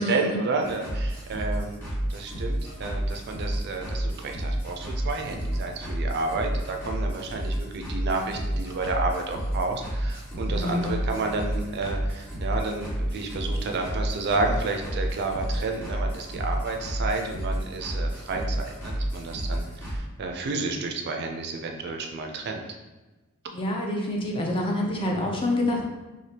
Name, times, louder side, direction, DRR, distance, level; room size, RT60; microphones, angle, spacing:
voice 1, 0.0-1.8 2.1-22.6, right 3 dB, 50° right, 3 dB, 0.3 m, -31 dB
sound 1, 0.6-20.0, right 1 dB, 10° left, 1.1 m, -30 dB
voice 2, 10.5-11.0 19.4-19.6 23.5-25.8, left 1 dB, 25° left, 0 dB, 0.4 m, -27 dB
3.2 x 2.4 x 2.7 m, 1.2 s
head